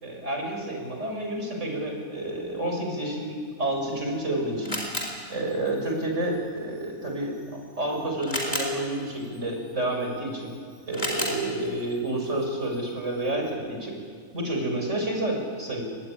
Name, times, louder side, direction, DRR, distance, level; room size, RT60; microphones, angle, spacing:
voice 1, 0.0-4.7 5.3-7.4 7.8-10.5 10.9-14.0 14.3-15.8, right 1 dB, 50° right, 2 dB, 5.7 m, -29 dB
Camera, 3.7-13.5, left 1 dB, 25° left, 4.7 m, -38 dB
23.5 x 19.5 x 10.0 m, 2.1 s
omnidirectional pair, 1.5 m